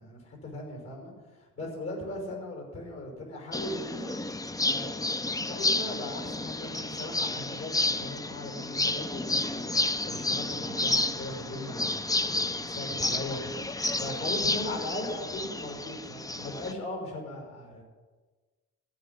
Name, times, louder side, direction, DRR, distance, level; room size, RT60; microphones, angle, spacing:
voice 1, 0.0-4.1 4.6-17.8, left 1 dB, 55° left, 2 dB, 5.7 m, -39 dB
sound 1, 3.5-16.7, left 2 dB, 10° left, 0.6 m, -31 dB
14.5 x 5.9 x 9.8 m, 1.3 s
cardioid pair, 90°, 30 cm